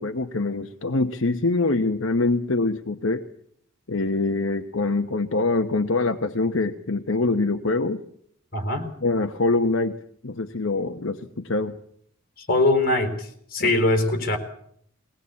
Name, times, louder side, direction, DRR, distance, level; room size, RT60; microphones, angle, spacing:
voice 1, 0.0-3.2 3.9-8.0 9.0-10.0 10.2-11.7, left 3 dB, 70° left, 6 dB, 1.1 m, -24 dB
voice 2, 8.5-8.9 12.4-14.4, left 2 dB, 45° left, 6 dB, 4.7 m, -22 dB
21.0 x 19.0 x 8.4 m, 0.66 s
head